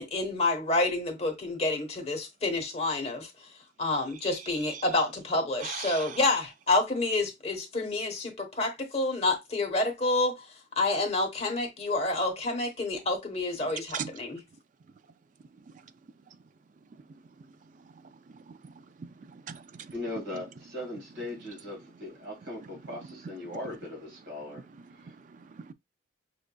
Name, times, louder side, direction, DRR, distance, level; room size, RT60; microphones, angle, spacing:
voice 1, 0.0-3.3 3.8-10.5 10.8-14.4, left 2 dB, 35° left, 1.1 m, -28 dB
voice 2, 5.6-6.2 13.9-14.1 18.6-18.7 19.0-19.9 25.6-25.7, right 7 dB, 45° right, 0.3 m, -38 dB
voice 3, 19.9-24.6 25.0-25.1, left 1 dB, 65° right, 2.0 m, -39 dB
6.0 x 2.5 x 2.2 m
head